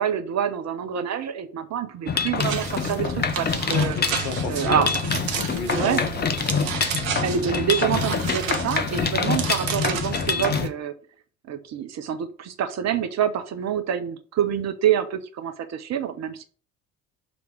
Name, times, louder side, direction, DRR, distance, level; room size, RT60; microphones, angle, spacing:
voice 1, 0.0-4.0 4.5-4.9 5.7-6.0 7.2-10.9 11.5-16.4, right 9 dB, 40° right, 0.9 m, -26 dB
Mechanisms, 2.1-10.7, left 5 dB, 25° left, 0.9 m, -26 dB
sound 1, 2.4-10.7, right 8 dB, 70° right, 0.9 m, -32 dB
voice 2, 3.9-5.0 5.3-6.5 6.9-7.7, left 5 dB, 55° left, 1.1 m, -34 dB
6.9 x 3.3 x 6.2 m
figure-of-eight pair, 55°, 42 cm